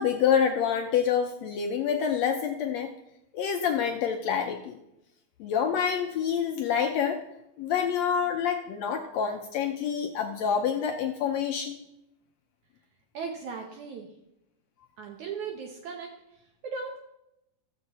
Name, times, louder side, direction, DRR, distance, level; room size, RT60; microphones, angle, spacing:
voice 1, 0.0-2.9 3.3-4.8 5.4-7.2 7.6-11.8, left 7 dB, 75° left, 4 dB, 1.6 m, -27 dB
voice 2, 13.1-14.1 15.0-17.0, right 5 dB, 70° right, 2 dB, 2.2 m, -38 dB
15.0 x 7.0 x 4.1 m, 0.86 s
omnidirectional pair, 3.7 m